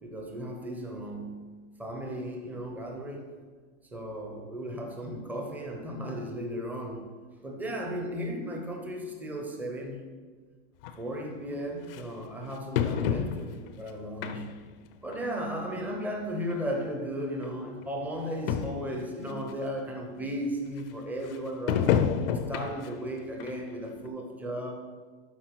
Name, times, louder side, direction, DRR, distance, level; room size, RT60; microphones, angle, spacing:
voice 1, 0.0-3.3 3.9-7.1 7.4-10.1 11.0-14.6 15.0-22.0 22.5-24.8, equal, 5° right, 2 dB, 0.6 m, -35 dB
sound 1, 10.8-10.9 11.9-12.0 12.8-13.7 14.2-14.7 15.1-15.3 16.2-16.3 16.5-16.6 17.4-17.5 17.8-17.9 18.2-18.3 18.5-18.9 19.5-19.6 21.7-23.0 23.4-23.6 24.1-24.2, left 8 dB, 55° left, 0.5 m, -28 dB
12.0 x 4.5 x 4.6 m, 1.5 s
supercardioid pair, 165°, 35 cm